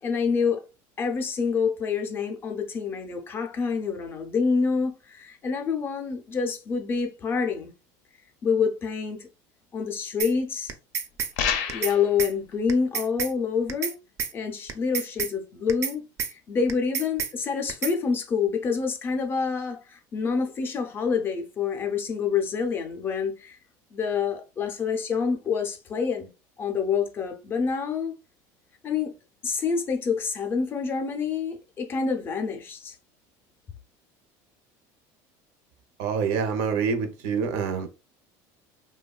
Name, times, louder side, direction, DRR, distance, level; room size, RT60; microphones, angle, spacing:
voice 1, 0.0-0.7 1.0-7.7 8.4-9.3 9.7-10.7 11.7-13.9 14.3-23.6 23.9-26.3 26.6-28.1 28.8-29.1 29.4-32.9, left 5 dB, 25° left, 0.4 m, -27 dB
sound 1, 10.2-10.3 10.7-11.3 11.7-11.9 12.2-12.3 12.7-13.3 13.7-13.9 14.2-14.3 14.7-15.3 15.7-15.9 16.2-16.3 16.7-17.3 17.7-17.9, right 7 dB, 35° right, 0.4 m, -29 dB
sound 2, 11.4-12.1, left 7 dB, 90° left, 0.5 m, -27 dB
voice 2, 36.0-37.9, right 6 dB, 75° right, 0.6 m, -26 dB
3.0 x 2.2 x 2.2 m
cardioid pair, 160°, 9 cm